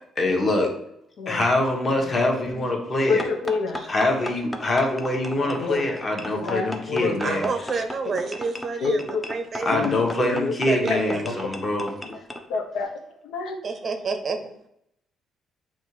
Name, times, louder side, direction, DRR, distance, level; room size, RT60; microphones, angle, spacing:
voice 1, 0.2-0.7 1.3-3.2 3.9-7.5 9.6-11.9, left 2 dB, 25° left, 1 dB, 1.1 m, -24 dB
voice 2, 2.6-3.8 5.4-5.9 6.3-7.4 8.8-9.3 9.7-10.5 10.9-11.3 12.0-12.2 12.5-12.9 13.2-13.6, left 4 dB, 80° left, 4 dB, 0.9 m, -29 dB
sound 1, 3.2-12.4, left 1 dB, 5° left, 0.6 m, -36 dB
voice 3, 7.2-9.0 9.3-9.9 10.7-11.2 13.6-14.5, right 4 dB, 30° right, 7 dB, 0.6 m, -28 dB
8.6 x 2.9 x 4.7 m, 0.77 s
cardioid pair, 175°, 0 cm